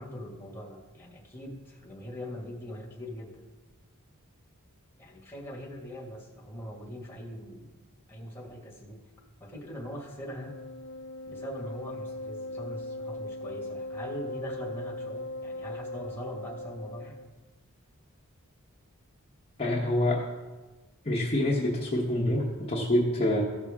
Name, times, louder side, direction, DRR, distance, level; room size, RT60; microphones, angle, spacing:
voice 1, 0.0-3.4 5.0-7.8 8.1-9.0 9.4-10.6 11.3-17.2, equal, 10° left, -3 dB, 1.7 m, -41 dB
Wind instrument woodwind instrument, 10.3-17.3, left 2 dB, 55° left, 0.5 m, -39 dB
voice 2, 19.6-20.2 21.0-23.4, left 1 dB, 30° left, -5 dB, 1.1 m, -26 dB
15.0 x 5.9 x 3.6 m, 1.2 s
head